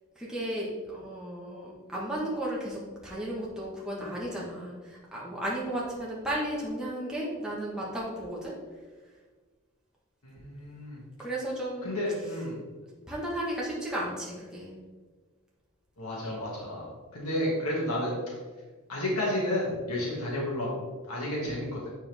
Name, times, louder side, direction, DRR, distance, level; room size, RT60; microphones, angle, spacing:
voice 1, 0.1-8.5 11.2-11.9 13.1-14.7, right 1 dB, 5° right, -6 dB, 1.3 m, -34 dB
voice 2, 10.2-11.0 11.8-12.6 16.0-18.2 18.9-21.9, left 1 dB, 85° left, -4 dB, 2.1 m, -31 dB
9.4 x 4.5 x 3.4 m, 1.4 s
head